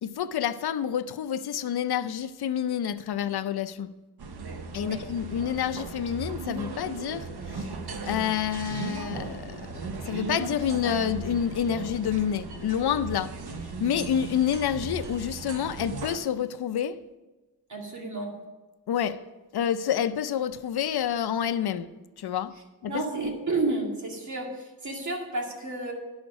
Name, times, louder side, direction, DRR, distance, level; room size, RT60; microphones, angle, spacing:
voice 1, 0.0-3.9 4.7-7.7 8.0-13.3 13.8-17.0 18.9-19.2 19.5-21.9 22.2-22.5 22.8-23.0, left 9 dB, 80° left, 0.6 m, -28 dB
sound 1, 4.2-16.2, right 4 dB, 90° right, 1.0 m, -37 dB
voice 2, 17.7-18.3 22.9-25.9, right 2 dB, 50° right, 2.2 m, -31 dB
11.0 x 6.5 x 6.1 m
wide cardioid pair, 170°, 37 cm